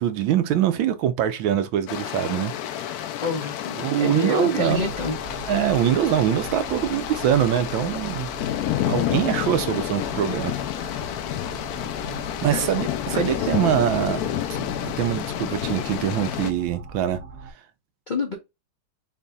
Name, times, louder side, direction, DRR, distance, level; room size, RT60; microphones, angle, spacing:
voice 1, 0.0-2.9 3.8-4.9 5.5-8.3 8.9-10.5 10.8-11.1 12.4-14.2 14.6-17.2, right 10 dB, 90° right, 1.5 m, -23 dB
sound 1, 1.9-16.5, left 12 dB, 70° left, 0.9 m, -29 dB
voice 2, 3.2-5.2 12.5-12.7 13.1-13.3 18.1-18.4, left 3 dB, 40° left, 0.6 m, -28 dB
sound 2, 4.7-17.5, right 4 dB, 45° right, 0.9 m, -40 dB
5.1 x 4.0 x 2.3 m
omnidirectional pair, 2.1 m